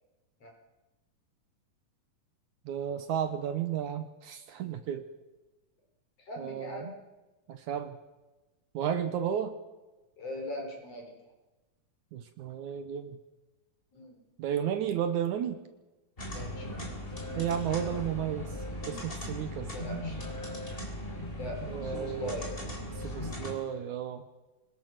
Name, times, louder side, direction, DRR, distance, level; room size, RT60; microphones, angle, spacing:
voice 1, 2.7-5.0 6.4-6.9 7.5-8.0 8.7-9.5 12.1-13.2 14.4-15.6 17.4-18.5 18.9-19.7 21.6-22.3 23.0-24.3, right 9 dB, 70° right, 9 dB, 2.3 m, -33 dB
voice 2, 6.2-6.9 10.2-11.1 13.9-14.1 16.3-17.0 19.7-20.2 21.4-22.5, left 1 dB, 45° left, 1 dB, 5.5 m, -40 dB
sound 1, 16.2-23.6, left 1 dB, 15° left, 3.6 m, -38 dB
25.0 x 20.5 x 6.1 m, 1.1 s
omnidirectional pair, 3.9 m